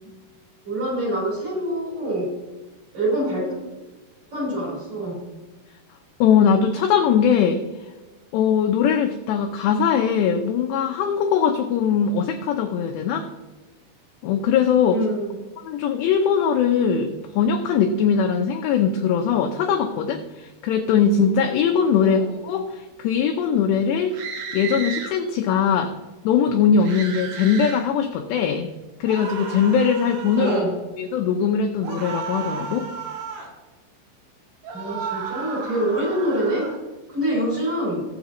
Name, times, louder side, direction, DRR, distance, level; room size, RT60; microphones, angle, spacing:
voice 1, 0.6-2.3 2.9-3.6 4.3-5.2 14.9-15.3 22.0-22.3 30.3-30.8 34.7-36.7 37.1-38.0, right 1 dB, 30° right, -6 dB, 5.1 m, -25 dB
voice 2, 6.2-7.6 8.3-13.3 14.2-15.0 15.6-24.2 24.5-25.9 26.2-28.7 29.0-30.5 31.0-32.9, left 7 dB, 80° left, 4 dB, 2.5 m, -21 dB
sound 1, 24.1-25.1 26.8-27.8 29.1-30.7 31.8-33.5 34.6-36.8, right 6 dB, 80° right, 4.7 m, -33 dB
20.5 x 7.5 x 3.0 m, 1.2 s
omnidirectional pair, 5.8 m